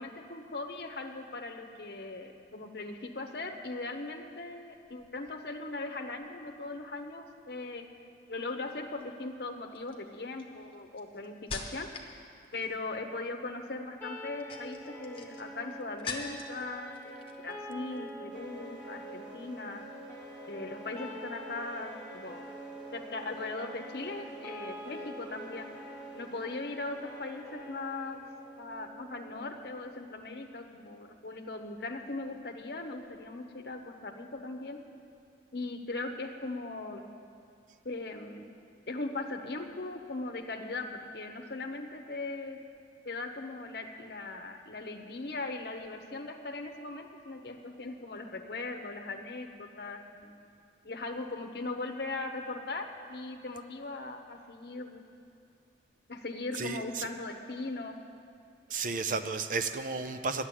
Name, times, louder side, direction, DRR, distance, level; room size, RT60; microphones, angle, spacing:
voice 1, 0.0-7.9 8.3-11.9 12.5-19.8 20.5-22.5 22.9-25.7 26.1-28.2 28.6-34.8 35.5-37.1 37.8-38.5 38.9-42.6 43.0-50.4 50.8-55.0 56.1-58.0, left 2 dB, 60° left, 4 dB, 0.9 m, -39 dB
sound 1, 8.7-9.0 9.8-12.2 12.4-13.0 14.2-16.6 16.9-17.6 17.9-18.1, left 4 dB, 30° left, 1.0 m, -43 dB
sound 2, 14.0-30.0, equal, 10° left, 1.2 m, -46 dB
sound 3, 18.3-28.7, right 2 dB, 80° right, 1.3 m, -51 dB
voice 2, 56.5-57.1 58.7-60.5, right 4 dB, 45° right, 9 dB, 0.5 m, -33 dB
11.0 x 7.4 x 9.8 m, 2.4 s
head